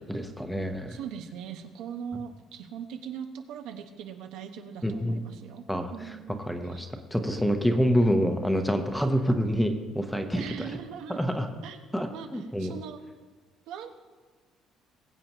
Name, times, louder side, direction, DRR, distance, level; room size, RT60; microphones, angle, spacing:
voice 1, 0.1-1.0 4.8-5.2 5.7-10.7 11.1-11.5 11.9-12.7, equal, ahead, 6 dB, 0.8 m, -27 dB
voice 2, 0.9-5.6 5.9-6.4 6.7-6.8 10.3-11.2 11.6-13.0 13.7-13.9, right 8 dB, 85° right, 6 dB, 1.0 m, -40 dB
21.0 x 8.3 x 3.0 m, 1.4 s
cardioid pair, 175°, 0 cm